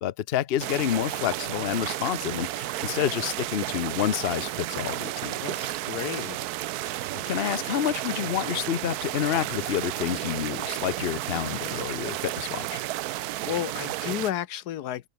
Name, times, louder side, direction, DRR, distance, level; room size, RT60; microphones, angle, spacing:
voice 1, 0.0-5.7 7.1-12.8, left 11 dB, 85° left, 0.5 m, -29 dB
sound 1, 0.6-14.3, right 15 dB, 70° right, 0.9 m, -32 dB
voice 2, 5.4-6.4 13.4-15.1, left 12 dB, 65° left, 1.2 m, -32 dB
open air
omnidirectional pair, 2.0 m